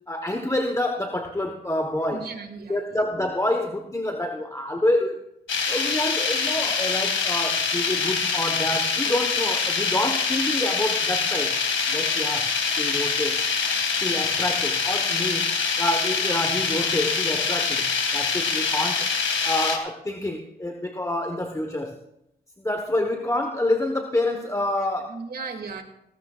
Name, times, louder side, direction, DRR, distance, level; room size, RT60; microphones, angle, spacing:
voice 1, 0.0-2.3 2.7-5.2 5.7-11.6 11.9-13.4 13.9-19.1 19.4-22.0 22.6-25.2, left 1 dB, 15° left, 4 dB, 1.1 m, -27 dB
voice 2, 2.1-3.0 25.1-25.8, right 4 dB, 55° right, 4 dB, 2.3 m, -36 dB
sound 1, 5.5-19.8, left 5 dB, 75° left, 1.9 m, -25 dB
19.0 x 17.5 x 2.4 m, 0.82 s
cardioid pair, 75°, 20 cm